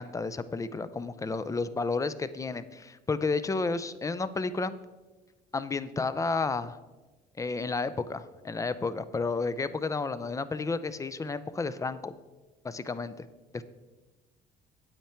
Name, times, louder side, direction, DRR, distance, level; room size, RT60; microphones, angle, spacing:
voice 1, 0.0-4.7 5.5-6.8 7.4-12.1 12.6-13.3 13.5-13.6, left 4 dB, 20° left, 14 dB, 0.5 m, -31 dB
8.9 x 8.6 x 4.4 m, 1.2 s
cardioid pair, 110°, 17 cm